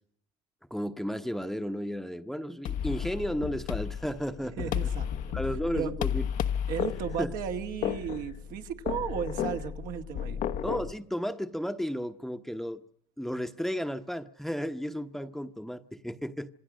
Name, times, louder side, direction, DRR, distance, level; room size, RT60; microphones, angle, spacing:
voice 1, 0.7-4.9 5.3-6.3 7.2-7.3 10.6-12.8 13.2-16.5, equal, ahead, 1.1 m, -33 dB
sound 1, 2.7-10.9, left 9 dB, 60° left, 1.1 m, -33 dB
voice 2, 4.6-5.3 5.7-5.9 6.7-10.4, right 9 dB, 65° right, 2.1 m, -35 dB
27.0 x 19.5 x 6.4 m
supercardioid pair, 100°, 15 cm